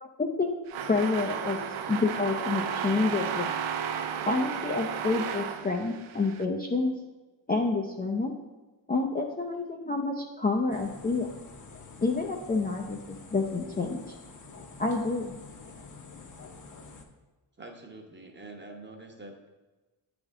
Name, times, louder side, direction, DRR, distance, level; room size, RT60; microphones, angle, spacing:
voice 1, 0.0-0.5 0.9-1.6 1.9-3.5 4.2-6.9 7.5-8.3 8.9-11.3 12.0-14.0 14.8-15.3, left 3 dB, 20° left, 0 dB, 0.5 m, -28 dB
sound 1, 0.7-6.4, right 8 dB, 75° right, 0.6 m, -33 dB
sound 2, 10.7-17.1, left 3 dB, 40° left, 0.9 m, -48 dB
voice 2, 17.6-19.5, right 2 dB, 20° right, 2 dB, 1.0 m, -46 dB
8.5 x 3.5 x 3.6 m, 1.2 s
cardioid pair, 80°, 49 cm